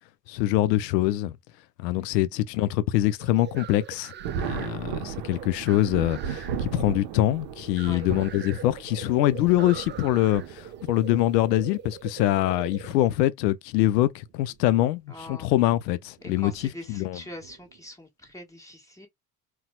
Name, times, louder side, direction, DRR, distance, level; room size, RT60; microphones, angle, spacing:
voice 1, 0.3-1.4 1.8-4.1 4.4-16.5 16.9-17.2, left 15 dB, 75° left, 0.5 m, -24 dB
sound 1, 3.2-13.1, right 8 dB, 25° right, 0.5 m, -41 dB
Thunder, 4.2-11.3 12.3-12.4 13.8-14.1 14.5-14.6 16.5-16.7 17.4-17.8, right 8 dB, 55° right, 0.7 m, -36 dB
voice 2, 4.6-4.9 5.3-5.5 7.8-8.0 15.1-15.5 16.2-19.1, left 1 dB, 5° left, 1.4 m, -43 dB
4.0 x 2.2 x 2.3 m
hypercardioid pair, 60°, 49 cm